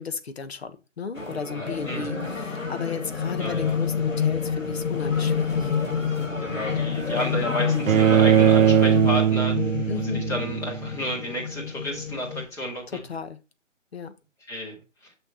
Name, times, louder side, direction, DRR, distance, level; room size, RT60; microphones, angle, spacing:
voice 1, 0.0-5.7 9.9-10.2 12.9-13.4 13.9-14.1, left 6 dB, 55° left, 1.4 m, -34 dB
sound 1, 1.1-9.2, left 2 dB, 90° left, 4.6 m, -35 dB
voice 2, 1.5-2.2 3.4-3.8 6.4-9.6 9.9-13.0 14.5-15.1, equal, 5° left, 1.9 m, -31 dB
sound 2, 1.7-12.4, left 7 dB, 70° left, 1.5 m, -29 dB
Bowed string instrument, 7.9-10.9, right 9 dB, 90° right, 0.5 m, -20 dB
7.1 x 6.6 x 4.1 m
figure-of-eight pair, 150°, 38 cm